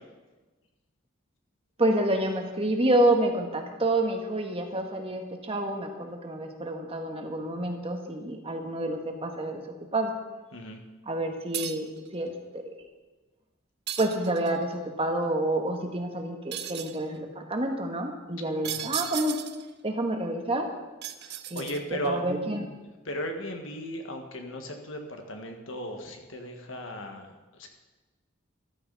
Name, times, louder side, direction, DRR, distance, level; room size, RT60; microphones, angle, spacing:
voice 1, 1.8-9.6 9.9-10.1 11.1-12.7 14.0-19.4 19.8-20.7 21.5-21.7 22.0-22.6, right 1 dB, 30° right, 3 dB, 1.5 m, -28 dB
sound 1, 11.5-12.0 13.9-14.6 16.5-17.0 18.6-19.7 21.0-22.1, right 11 dB, 55° right, 0.7 m, -35 dB
voice 2, 21.2-22.2 23.0-27.7, equal, 70° left, 4 dB, 1.7 m, -36 dB
14.0 x 12.5 x 4.1 m, 1.2 s
head